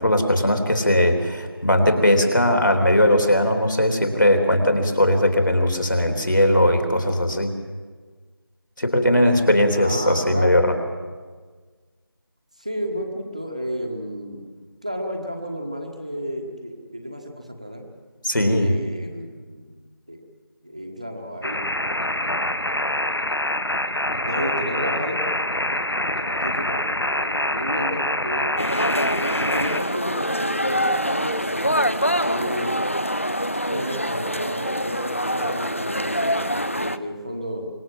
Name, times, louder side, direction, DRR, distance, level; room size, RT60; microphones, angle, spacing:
voice 1, 0.0-7.5 8.8-10.8 18.2-18.7, left 1 dB, 55° left, 5 dB, 3.5 m, -19 dB
voice 2, 9.8-10.5 12.6-14.4 14.8-17.8 18.6-19.7 20.1-20.2 20.6-21.6 24.2-25.3 26.2-28.5 28.9-32.7 33.7-37.7, equal, 15° right, 3 dB, 1.4 m, -32 dB
sound 1, 21.4-29.8, left 1 dB, 70° left, 1.4 m, -25 dB
sound 2, 28.6-37.0, equal, 35° left, 0.6 m, -25 dB
25.5 x 22.5 x 7.6 m, 1.5 s
figure-of-eight pair, 175°, 13 cm